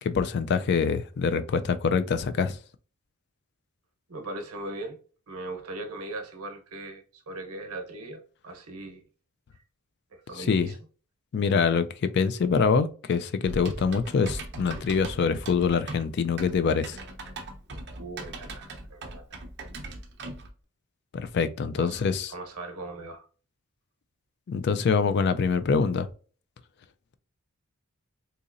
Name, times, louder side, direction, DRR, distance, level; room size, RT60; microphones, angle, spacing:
voice 1, 0.0-2.6 10.4-10.7 11.3-17.0 21.1-22.3 24.5-26.1, left 5 dB, 50° left, 0.3 m, -25 dB
voice 2, 4.1-5.0 5.3-9.0 9.5-9.6 10.1-10.8 18.0-19.4 21.8-22.0 22.3-23.3, right 2 dB, 80° right, 0.9 m, -39 dB
Typing, 13.5-20.5, right 2 dB, 50° right, 0.7 m, -39 dB
4.0 x 2.9 x 2.5 m
head